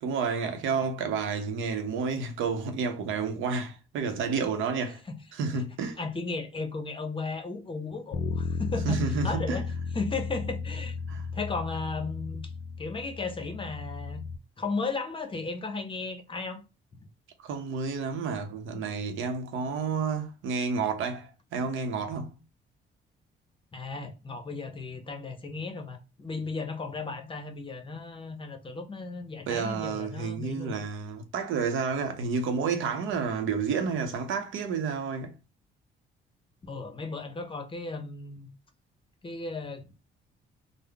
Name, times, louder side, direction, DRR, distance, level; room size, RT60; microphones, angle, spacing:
voice 1, 0.0-5.0 5.3-6.0 8.8-9.6 11.1-11.3 17.4-22.4 29.5-35.3, right 5 dB, 80° right, 0.7 m, -30 dB
voice 2, 6.0-9.0 9.2-9.7 9.9-10.9 11.3-12.5 12.8-14.2 14.6-16.6 23.7-30.8 36.6-38.5 39.2-39.9, left 3 dB, 25° left, 0.7 m, -35 dB
Bass guitar, 8.1-14.4, left 5 dB, 55° left, 0.4 m, -34 dB
3.6 x 2.1 x 3.4 m
cardioid pair, 90°, 20 cm